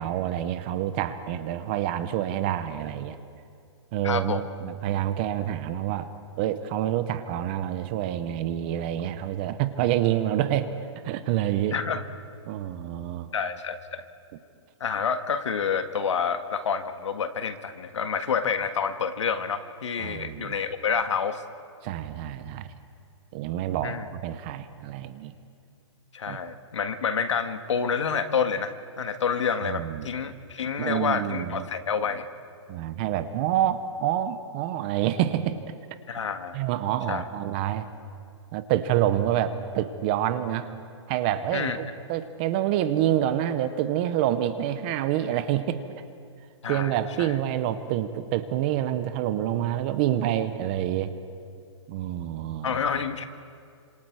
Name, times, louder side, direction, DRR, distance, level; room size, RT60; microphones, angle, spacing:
voice 1, 0.0-3.2 3.9-6.1 6.4-10.7 11.0-11.8 12.4-13.3 20.0-20.5 21.8-22.7 23.3-25.3 26.3-26.4 29.6-30.1 30.8-31.7 32.7-35.6 36.5-37.9 38.5-40.7 41.1-45.8 46.7-51.1 51.9-52.8, right 11 dB, 20° right, 12 dB, 0.6 m, -27 dB
voice 2, 4.0-4.5 11.7-12.0 13.3-14.0 14.8-21.4 23.8-24.0 26.1-32.3 36.1-36.6 37.1-37.2 41.5-41.8 46.6-46.9 47.2-47.3 52.6-53.2, left 6 dB, 75° left, 8 dB, 1.7 m, -28 dB
28.0 x 26.5 x 4.7 m, 2.3 s
hypercardioid pair, 175°, 15 cm